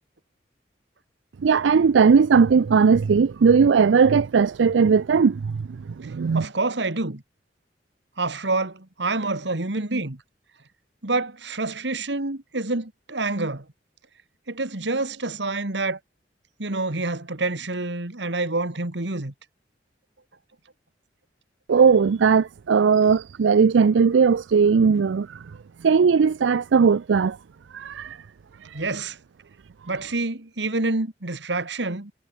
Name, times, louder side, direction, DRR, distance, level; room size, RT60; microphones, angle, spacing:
voice 1, 1.4-5.7 6.0-6.5 21.7-25.4 25.8-27.4 27.7-28.2 28.6-28.8, right 5 dB, 90° right, 0.4 m, -18 dB
voice 2, 6.0-7.2 8.2-10.2 11.0-13.7 14.5-16.0 16.6-19.3 28.7-29.2 29.9-32.1, right 2 dB, 70° right, 2.1 m, -27 dB
head